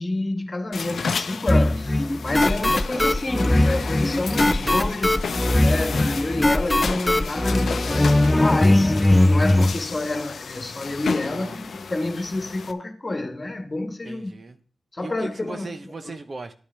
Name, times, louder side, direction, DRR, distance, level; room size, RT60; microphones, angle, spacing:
voice 1, 0.0-5.3 5.6-9.0 9.2-14.3 14.9-15.6, left 2 dB, 35° left, 1.5 m, -28 dB
sound 1, 0.7-12.7, left 5 dB, 70° left, 0.6 m, -32 dB
sound 2, 1.5-9.7, left 1 dB, 20° left, 0.5 m, -20 dB
voice 2, 2.3-3.1 4.4-4.9 11.3-11.6 14.0-14.6 15.0-16.5, right 3 dB, 50° right, 0.9 m, -38 dB
11.5 x 8.5 x 3.4 m
cardioid pair, 45°, 0 cm